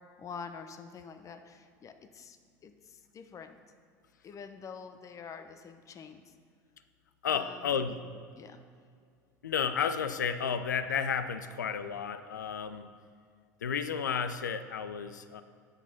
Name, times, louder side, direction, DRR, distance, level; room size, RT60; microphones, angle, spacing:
voice 1, 0.2-2.4 2.6-3.6 4.2-6.2 7.3-8.0 8.3-8.6, left 6 dB, 35° left, 8 dB, 0.8 m, -46 dB
voice 2, 7.2-8.0 9.4-12.9 13.6-15.4, left 7 dB, 85° left, 11 dB, 0.4 m, -32 dB
8.2 x 6.1 x 5.7 m, 2.2 s
hypercardioid pair, 75°, 9 cm